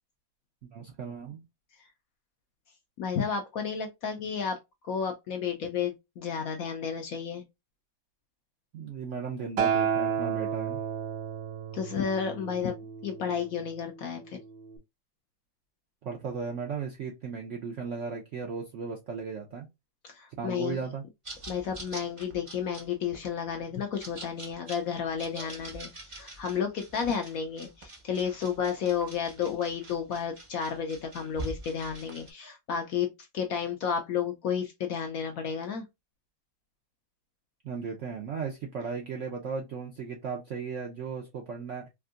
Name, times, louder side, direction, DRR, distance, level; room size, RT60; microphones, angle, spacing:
voice 1, 0.7-1.4 8.7-10.8 16.0-19.7 20.4-21.0 37.6-41.9, right 5 dB, 70° right, 0.7 m, -36 dB
voice 2, 3.0-4.6 4.9-7.4 11.7-14.4 20.1-20.8 21.5-33.1 33.3-35.8, left 7 dB, 70° left, 0.9 m, -32 dB
Acoustic guitar, 9.6-13.9 14.7-14.8, right 7 dB, 85° right, 1.4 m, -31 dB
sound 1, 21.3-32.3, right 2 dB, 35° right, 0.5 m, -45 dB
3.5 x 2.6 x 2.4 m
omnidirectional pair, 1.9 m